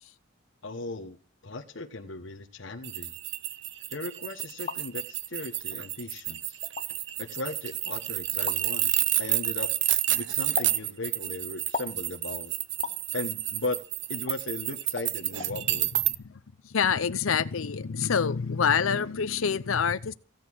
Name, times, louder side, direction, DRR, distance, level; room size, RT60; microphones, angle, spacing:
voice 1, 0.6-1.2 1.4-3.1 3.9-6.6 7.2-12.5 13.1-13.8 14.1-15.9, left 2 dB, 70° left, 1.2 m, -37 dB
sound 1, 2.8-16.1, right 14 dB, 60° right, 0.7 m, -30 dB
sound 2, 4.4-4.8 5.7-5.8 6.6-6.9 8.5-8.6 10.6-10.8 11.7-12.0 12.8-13.0 14.3-14.4 15.0-15.1 15.4-15.5, left 5 dB, 35° left, 0.8 m, -35 dB
voice 2, 16.6-20.1, left 6 dB, 90° left, 0.6 m, -26 dB
16.0 x 9.2 x 6.2 m
head